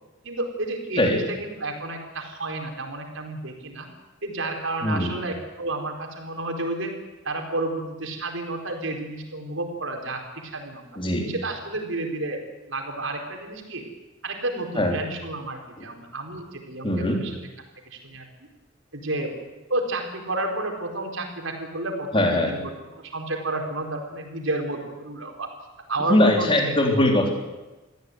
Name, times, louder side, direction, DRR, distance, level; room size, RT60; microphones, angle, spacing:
voice 1, 0.2-3.9 4.2-6.9 7.2-10.8 11.3-12.4 12.7-13.8 14.2-17.3 17.8-18.3 18.9-19.3 19.7-25.5 25.9-26.8, right 2 dB, 75° right, 3 dB, 4.7 m, -31 dB
voice 2, 4.8-5.2 11.0-11.3 14.8-15.0 16.8-17.2 22.1-22.5 26.1-27.3, left 1 dB, 25° left, 2 dB, 3.6 m, -21 dB
24.0 x 15.5 x 9.5 m, 1.1 s
head